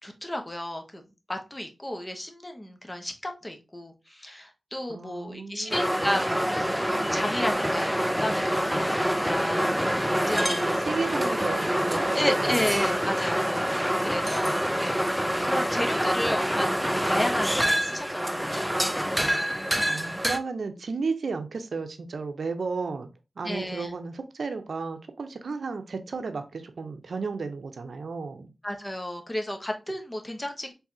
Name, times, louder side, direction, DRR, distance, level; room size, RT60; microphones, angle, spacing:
voice 1, 0.0-10.6 12.1-15.1 15.4-18.7 23.4-23.9 28.6-30.7, left 1 dB, 20° left, 0.9 m, -33 dB
voice 2, 4.9-5.8 10.3-12.6 19.9-23.1 23.4-28.5, right 4 dB, 80° right, 0.6 m, -33 dB
sound 1, 5.7-20.4, equal, 5° right, 0.4 m, -26 dB
4.6 x 3.3 x 2.7 m
wide cardioid pair, 85°, 0 cm